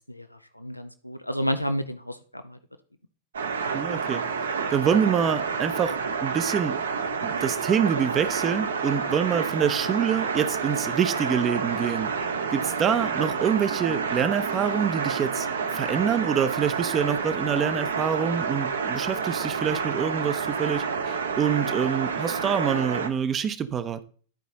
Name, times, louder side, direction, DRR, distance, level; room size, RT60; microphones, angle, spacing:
voice 1, 0.1-2.6, equal, 90° left, 0.6 m, -31 dB
sound 1, 3.3-23.1, right 5 dB, 70° right, 1.1 m, -29 dB
voice 2, 3.7-4.2 4.7-6.0 6.2-6.8 7.2-12.1 12.5-15.5 15.7-24.0, right 7 dB, 25° right, 0.7 m, -26 dB
11.5 x 5.0 x 4.0 m
figure-of-eight pair, 90°, 0 cm